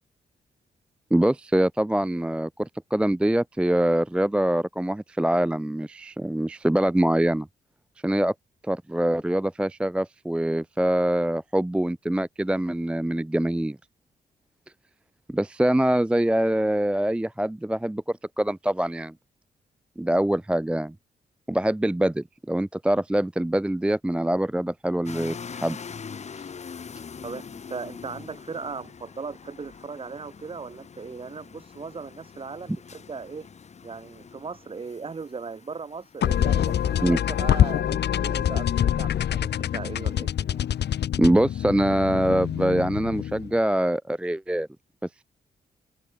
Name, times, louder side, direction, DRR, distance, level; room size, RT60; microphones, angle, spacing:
voice 1, 1.1-7.5 8.0-8.3 8.6-13.8 15.3-19.1 20.0-20.9 21.5-25.8 37.0-37.2 41.2-44.7, right 1 dB, 5° right, 0.4 m, -24 dB
sound 1, 25.1-37.8, left 6 dB, 40° left, 1.0 m, -44 dB
voice 2, 27.2-33.5 33.8-40.6, right 4 dB, 30° right, 1.2 m, -38 dB
sound 2, 36.2-43.5, left 10 dB, 70° left, 1.1 m, -25 dB
open air
cardioid pair, 110°, 18 cm